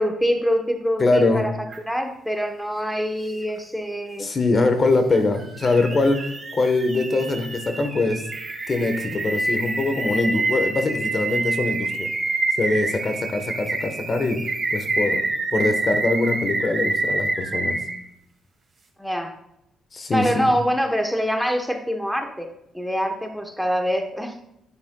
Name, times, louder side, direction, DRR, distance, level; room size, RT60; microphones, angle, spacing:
voice 1, 0.0-1.6 1.8-4.3 19.0-19.3 20.1-22.5 22.7-24.3, equal, ahead, 4 dB, 1.0 m, -24 dB
voice 2, 1.0-1.5 4.2-8.2 8.7-12.1 12.6-14.4 14.7-15.2 15.5-17.8 19.9-20.5, left 2 dB, 40° left, 7 dB, 1.1 m, -23 dB
sound 1, 1.7-1.8 5.1-18.0, right 2 dB, 30° right, 2.1 m, -27 dB
10.0 x 9.1 x 2.3 m, 0.80 s
cardioid pair, 90°, 0 cm